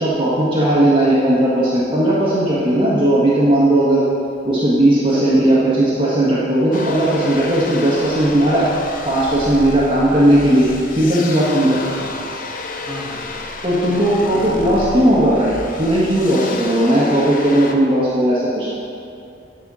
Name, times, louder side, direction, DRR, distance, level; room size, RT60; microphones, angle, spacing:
voice 1, 0.0-4.0 4.4-8.7 9.0-10.7 10.9-11.8 13.6-18.7, right 1 dB, 30° right, -9 dB, 1.6 m, -16 dB
voice 2, 5.1-5.4 10.1-10.3 11.8-12.1 12.8-13.3 13.9-14.9, equal, 5° right, -9 dB, 2.1 m, -33 dB
sound 1, 6.7-17.7, left 3 dB, 45° left, 0.7 m, -31 dB
10.0 x 5.6 x 5.6 m, 2.6 s
head